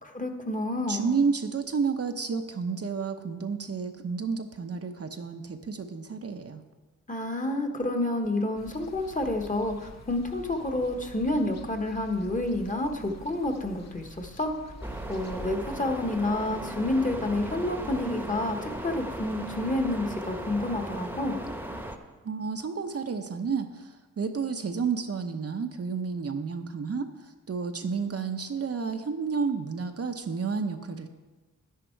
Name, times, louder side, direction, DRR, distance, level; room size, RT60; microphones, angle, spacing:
voice 1, 0.0-1.2 7.1-14.5 15.1-21.4, left 1 dB, 25° left, 4 dB, 1.3 m, -29 dB
voice 2, 0.9-6.6 22.2-31.1, right 5 dB, 45° right, 6 dB, 0.8 m, -31 dB
sound 1, 8.6-15.5, left 2 dB, 50° left, 1.1 m, -47 dB
sound 2, 14.8-22.0, right 1 dB, 5° right, 1.1 m, -37 dB
10.5 x 10.0 x 4.6 m, 1.3 s
cardioid pair, 80°, 33 cm